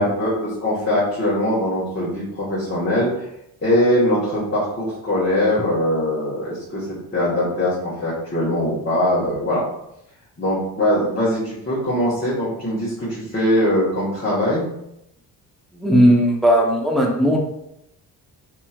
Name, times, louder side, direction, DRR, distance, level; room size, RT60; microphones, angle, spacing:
voice 1, 0.0-3.3 3.6-6.9 7.1-9.6 10.4-14.7, left 1 dB, 25° left, -9 dB, 1.3 m, -21 dB
voice 2, 15.7-17.4, equal, ahead, -1 dB, 0.7 m, -16 dB
2.9 x 2.8 x 2.4 m, 0.80 s
supercardioid pair, 55°, 46 cm